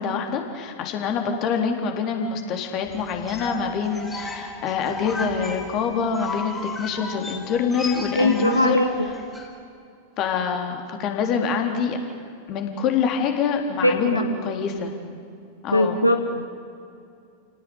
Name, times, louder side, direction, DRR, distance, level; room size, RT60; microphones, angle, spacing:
voice 1, 0.0-8.8 10.2-12.0 12.5-14.9 15.6-16.0, left 6 dB, 35° left, 4 dB, 3.8 m, -25 dB
sound 1, 2.8-9.5, left 2 dB, 10° left, 4.6 m, -35 dB
voice 2, 8.1-8.9 13.8-14.3 15.7-16.4, left 1 dB, 85° left, 6 dB, 1.4 m, -20 dB
30.0 x 18.5 x 9.5 m, 2.5 s
figure-of-eight pair, 90°, 0 cm